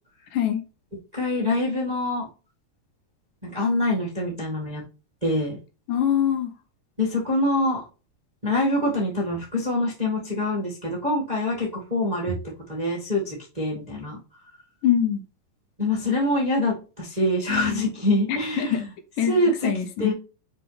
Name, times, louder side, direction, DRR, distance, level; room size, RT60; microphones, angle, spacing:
voice 1, 0.3-0.6 5.9-6.5 14.8-15.2 18.3-18.8 19.2-20.1, left 9 dB, 75° left, 2.3 m, -24 dB
voice 2, 1.1-2.3 3.4-4.8 5.2-5.6 7.0-7.8 8.4-12.3 12.7-14.2 15.8-18.9 19.3-19.7 20.0-20.1, left 1 dB, 20° right, 1.1 m, -25 dB
6.3 x 4.5 x 3.4 m
omnidirectional pair, 4.2 m